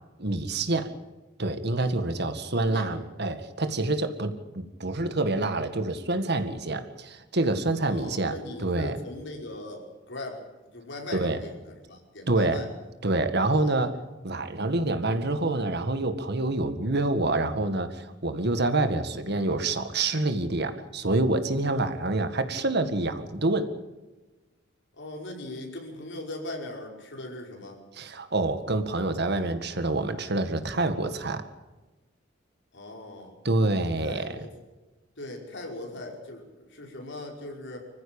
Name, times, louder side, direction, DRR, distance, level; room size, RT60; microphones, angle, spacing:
voice 1, 0.2-0.9 1.4-9.0 11.1-11.4 12.3-12.6 13.0-14.0 14.2-23.7 28.0-31.4 33.4-34.5, right 2 dB, 60° right, 9 dB, 2.0 m, -27 dB
voice 2, 2.5-2.9 7.8-12.7 13.5-13.9 21.6-21.9 25.0-27.8 32.7-33.3 34.0-34.5 35.2-37.8, left 2 dB, 65° left, 1 dB, 5.4 m, -40 dB
25.5 x 15.0 x 8.8 m, 1.1 s
head